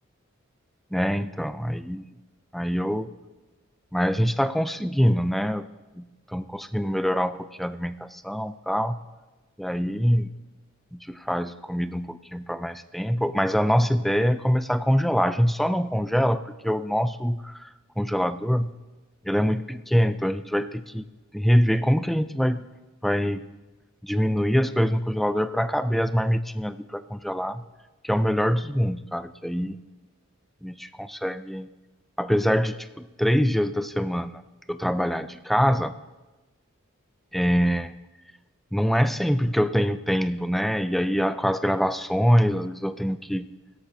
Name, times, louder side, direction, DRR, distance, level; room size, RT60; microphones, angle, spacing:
voice 1, 0.9-2.0 2.5-3.1 3.9-5.6 6.0-9.0 9.6-10.3 10.9-17.7 18.0-18.7 19.3-21.1 21.3-22.7 23.0-23.5 24.0-27.6 28.0-29.8 30.6-31.7 32.2-34.4 34.7-35.9 37.3-37.9 38.7-43.5, equal, ahead, 12 dB, 0.3 m, -24 dB
16.5 x 13.0 x 2.7 m, 1.2 s
head